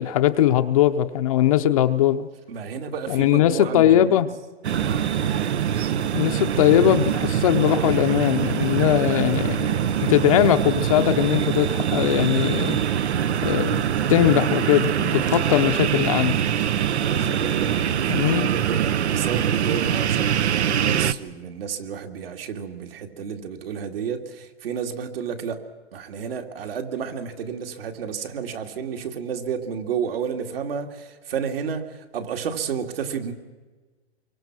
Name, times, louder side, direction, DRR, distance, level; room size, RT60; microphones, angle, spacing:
voice 1, 0.0-2.3 3.1-4.3 6.1-12.8 13.4-13.8 14.1-16.4 18.1-18.5, left 11 dB, 30° left, 8 dB, 0.7 m, -20 dB
voice 2, 2.5-4.2 4.8-5.1 16.9-25.6 25.9-33.3, right 7 dB, 60° right, 4 dB, 2.6 m, -31 dB
sound 1, 4.6-21.1, right 9 dB, 75° right, 1.0 m, -23 dB
26.5 x 23.5 x 6.2 m, 1.3 s
hypercardioid pair, 160°, 34 cm